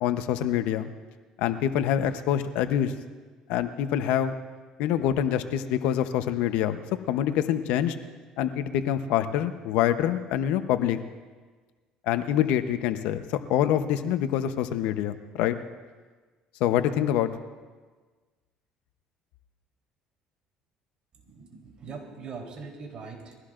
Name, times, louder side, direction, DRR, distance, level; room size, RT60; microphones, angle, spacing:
voice 1, 0.0-0.9 1.4-2.9 3.5-4.3 4.8-6.8 7.1-8.0 8.4-11.0 12.1-13.2 13.5-15.6 16.6-17.3, left 10 dB, 80° left, 10 dB, 0.8 m, -25 dB
voice 2, 21.1-23.3, right 4 dB, 50° right, 1 dB, 3.6 m, -41 dB
22.5 x 16.0 x 2.5 m, 1.4 s
supercardioid pair, 90°, 2 cm